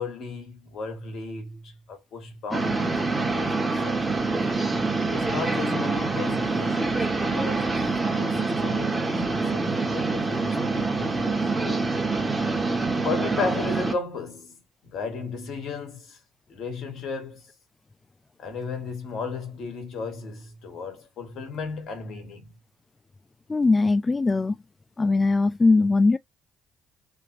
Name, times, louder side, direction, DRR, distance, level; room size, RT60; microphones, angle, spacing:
voice 1, 0.0-4.0 5.1-7.7 8.2-11.9 13.0-16.2 16.5-17.4 18.4-22.5, left 4 dB, 65° left, 1.7 m, -35 dB
sound 1, 2.5-13.9, right 3 dB, 25° right, 1.4 m, -26 dB
voice 2, 23.5-24.5 25.0-26.2, left 3 dB, 25° left, 0.3 m, -20 dB
3.5 x 2.7 x 2.7 m
hypercardioid pair, 55°, 0 cm